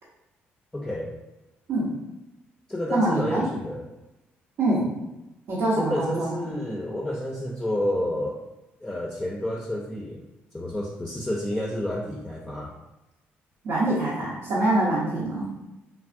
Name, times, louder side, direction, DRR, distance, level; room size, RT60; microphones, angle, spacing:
voice 1, 0.7-1.1 2.7-3.9 5.8-8.4 8.8-10.2 10.5-12.7, left 1 dB, 10° left, -3 dB, 0.5 m, -29 dB
voice 2, 2.9-3.4 4.6-4.9 5.5-6.3 13.6-15.5, right 2 dB, 70° right, -8 dB, 0.8 m, -24 dB
3.3 x 2.4 x 2.5 m, 0.97 s
supercardioid pair, 60°, 5 cm